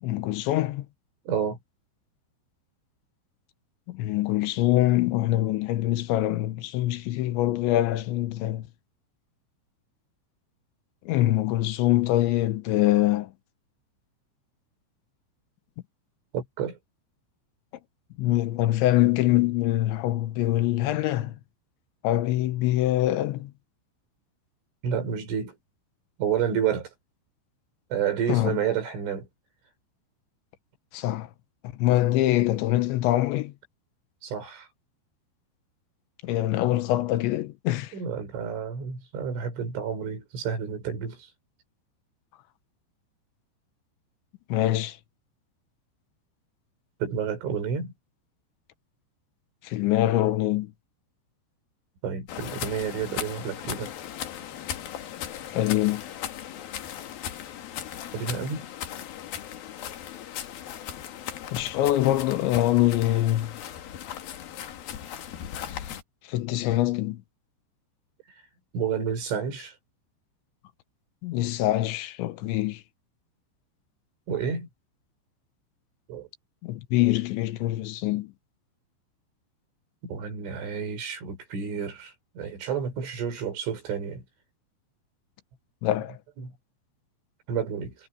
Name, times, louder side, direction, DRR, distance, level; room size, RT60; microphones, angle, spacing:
voice 1, 0.0-0.9 3.9-8.7 11.1-13.3 18.2-21.4 22.0-23.5 28.3-28.6 30.9-31.3 31.7-33.5 36.2-37.9 44.5-45.0 49.6-50.7 55.5-56.0 61.5-63.5 65.7-65.8 66.3-67.2 71.2-72.8 76.6-78.3 85.8-86.2, left 15 dB, 75° left, 3.2 m, -24 dB
voice 2, 1.3-1.6 16.3-16.8 24.8-25.6 26.2-26.9 27.9-29.3 33.1-33.2 34.2-34.7 37.9-41.3 47.0-47.9 52.0-53.9 58.1-58.7 68.7-69.8 74.3-74.7 76.1-76.3 80.0-84.2 86.4-86.5 87.5-88.0, right 7 dB, 85° right, 8.5 m, -30 dB
sound 1, 52.3-66.0, left 10 dB, 60° left, 3.0 m, -37 dB
omnidirectional pair, 5.4 m